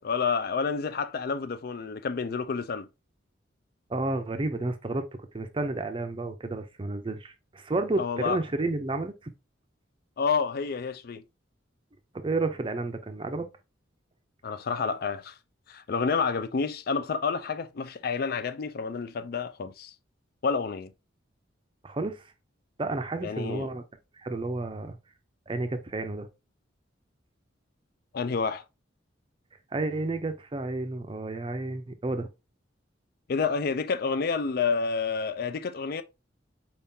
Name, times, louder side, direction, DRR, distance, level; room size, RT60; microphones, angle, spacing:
voice 1, 0.0-2.9 8.0-8.4 10.2-11.2 14.4-15.4 15.7-19.9 20.4-20.9 23.2-23.7 28.1-28.6 33.3-36.0, left 5 dB, 50° left, 0.4 m, -29 dB
voice 2, 3.9-5.1 5.3-9.3 12.1-13.5 21.8-22.2 22.8-23.8 24.2-25.0 25.5-26.3 29.7-32.3, right 2 dB, 25° right, 0.5 m, -31 dB
4.6 x 3.6 x 2.7 m
head